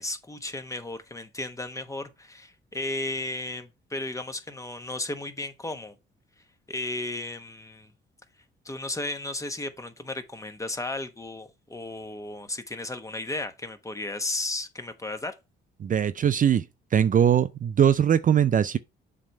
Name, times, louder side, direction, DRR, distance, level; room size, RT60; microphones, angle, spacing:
voice 1, 0.0-5.9 6.7-7.9 8.6-15.3, left 2 dB, 15° left, 1.2 m, -34 dB
voice 2, 15.8-16.6 16.9-18.8, right 9 dB, 45° right, 0.5 m, -21 dB
7.4 x 3.5 x 5.3 m
cardioid pair, 90°, 20 cm